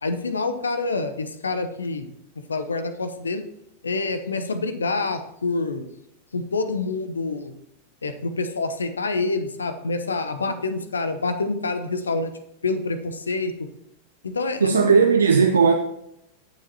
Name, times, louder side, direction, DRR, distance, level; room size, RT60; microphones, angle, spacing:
voice 1, 0.0-2.1 2.5-3.4 3.8-5.9 6.3-7.5 8.0-12.3 12.6-13.5 14.2-15.0, left 3 dB, 75° left, 10 dB, 0.9 m, -27 dB
voice 2, 14.6-15.7, right 5 dB, 75° right, 5 dB, 0.7 m, -16 dB
17.0 x 7.4 x 2.9 m, 0.78 s
figure-of-eight pair, 90°, 0 cm